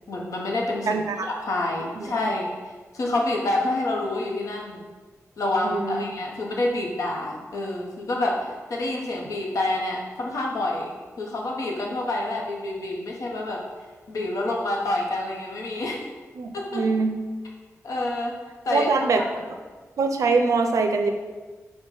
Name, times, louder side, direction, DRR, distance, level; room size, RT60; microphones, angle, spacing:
voice 1, 0.1-1.0 1.4-2.5 2.9-4.9 5.4-13.6 14.1-16.0 16.5-16.8 17.8-18.3 18.6-18.9 19.2-19.3, left 2 dB, 85° left, -1 dB, 0.8 m, -27 dB
voice 2, 0.9-1.3 2.0-2.1 5.6-6.0 16.3-17.1 18.7-19.3 20.0-21.1, right 4 dB, 75° right, 5 dB, 0.4 m, -23 dB
5.0 x 2.1 x 4.7 m, 1.4 s
wide cardioid pair, 180°, 6 cm